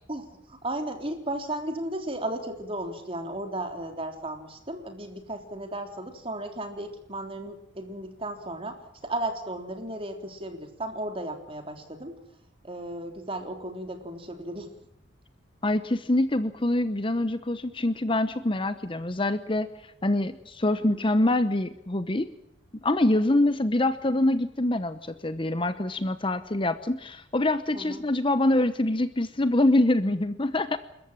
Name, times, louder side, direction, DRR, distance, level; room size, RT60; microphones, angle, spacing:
voice 1, 0.1-12.1 12.6-14.7 27.7-28.1, right 1 dB, 30° right, 5 dB, 3.6 m, -35 dB
voice 2, 15.6-19.7 20.0-22.3 22.8-30.8, left 1 dB, 25° left, 12 dB, 0.9 m, -25 dB
28.5 x 14.0 x 8.9 m, 0.83 s
head